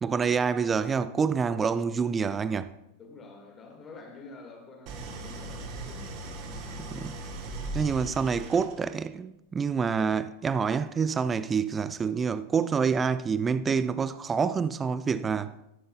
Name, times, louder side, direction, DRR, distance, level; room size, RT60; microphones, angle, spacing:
voice 1, 0.0-2.7 6.8-7.2 7.7-15.6, right 6 dB, 20° right, 0.4 m, -27 dB
voice 2, 3.0-6.4 7.1-7.2, left 3 dB, 25° left, 2.0 m, -48 dB
Idling, 4.9-9.1, right 2 dB, 40° right, 1.2 m, -38 dB
13.5 x 10.0 x 2.4 m
figure-of-eight pair, 90°, 0 cm